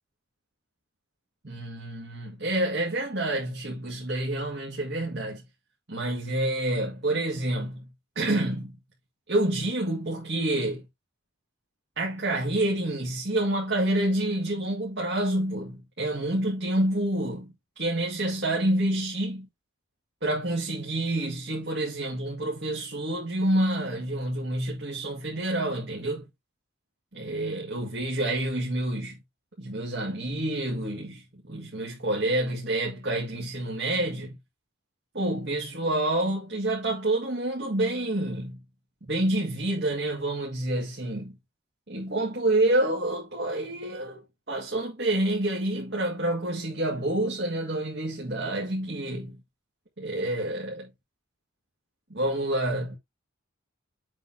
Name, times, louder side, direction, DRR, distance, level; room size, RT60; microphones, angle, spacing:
voice 1, 1.4-5.4 5.9-7.9 8.2-8.8 9.3-10.8 12.0-17.5 17.8-19.5 20.2-26.2 27.1-29.2 29.6-34.4 35.1-38.6 39.1-41.4 41.9-49.4 50.0-50.9 52.1-53.0, right 1 dB, 55° right, 2.2 m, -28 dB
7.6 x 4.4 x 3.6 m
head